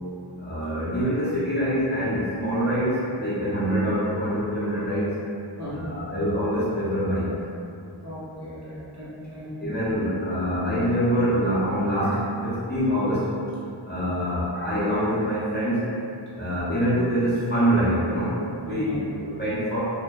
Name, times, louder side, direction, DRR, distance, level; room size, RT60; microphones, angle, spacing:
voice 1, 0.4-5.1 5.7-7.3 9.6-13.3 13.9-15.8 16.4-19.8, equal, 20° left, -12 dB, 0.6 m, -25 dB
voice 2, 5.6-6.0 8.0-9.5 18.6-19.0, left 1 dB, 35° right, -11 dB, 0.8 m, -36 dB
2.7 x 2.1 x 2.2 m, 2.6 s
wide cardioid pair, 85°, 50 cm